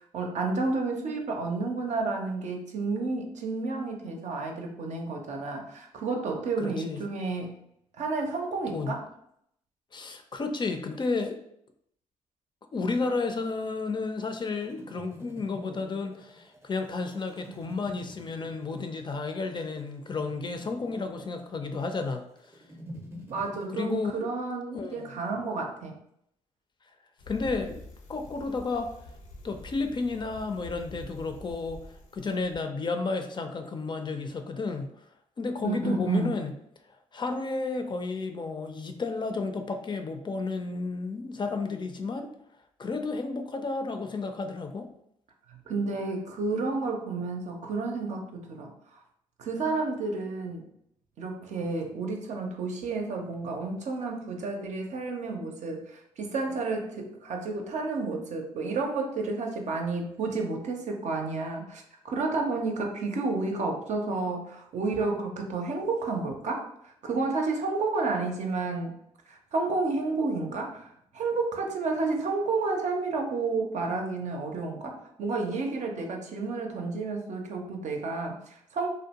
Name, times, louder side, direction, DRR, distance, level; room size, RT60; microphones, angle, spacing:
voice 1, 0.1-7.5 8.0-9.1 23.3-25.9 35.6-36.4 45.5-48.7 49.4-50.7 51.2-69.0 69.3-78.9, right 3 dB, 60° right, 2 dB, 0.6 m, -31 dB
voice 2, 6.6-7.1 8.7-9.0 9.9-11.4 12.7-22.2 23.7-24.3 24.7-25.1 27.3-27.8 28.1-28.9 29.4-31.8 32.1-34.9 35.4-36.5 37.1-42.3 42.8-44.9, left 3 dB, 35° left, 6 dB, 0.4 m, -32 dB
sound 1, 13.0-23.7, equal, 20° right, 0.6 m, -48 dB
Bicycle, 27.2-32.6, left 1 dB, 85° left, 0.6 m, -46 dB
2.6 x 2.1 x 2.8 m, 0.73 s
supercardioid pair, 60°, 14 cm